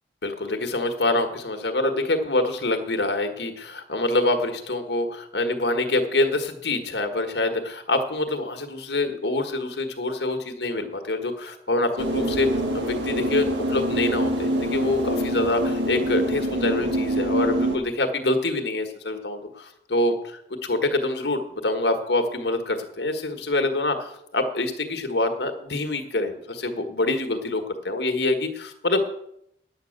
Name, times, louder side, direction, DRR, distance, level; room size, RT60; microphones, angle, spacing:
voice 1, 0.2-29.0, left 2 dB, 75° left, 6 dB, 1.5 m, -26 dB
sound 1, 12.0-17.8, right 1 dB, 85° right, 1.7 m, -25 dB
9.8 x 8.3 x 6.5 m, 0.76 s
head